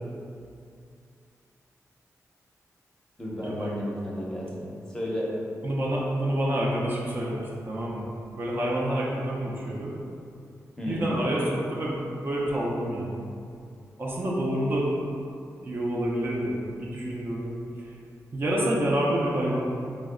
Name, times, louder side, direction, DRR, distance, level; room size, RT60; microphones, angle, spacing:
voice 1, 3.2-5.4 10.8-11.1, equal, 10° left, -6 dB, 0.7 m, -32 dB
voice 2, 5.6-8.1 8.4-9.9 10.9-13.3 14.0-14.9 15.6-17.5 18.3-19.6, right 1 dB, 40° right, -5 dB, 0.5 m, -28 dB
3.2 x 2.0 x 3.6 m, 2.5 s
cardioid pair, 90°, 6 cm